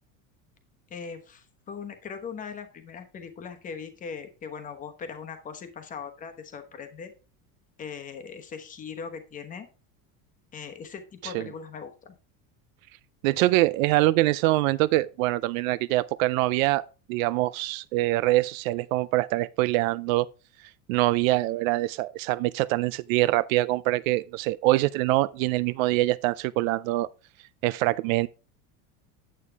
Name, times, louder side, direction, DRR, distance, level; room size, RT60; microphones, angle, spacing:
voice 1, 0.9-7.1 7.8-9.7 10.5-12.1, left 6 dB, 20° left, 1.0 m, -40 dB
voice 2, 13.2-16.8 17.1-20.3 20.9-27.1 27.6-28.3, right 18 dB, 70° right, 0.5 m, -24 dB
9.1 x 8.3 x 3.5 m
cardioid pair, 175°, 41 cm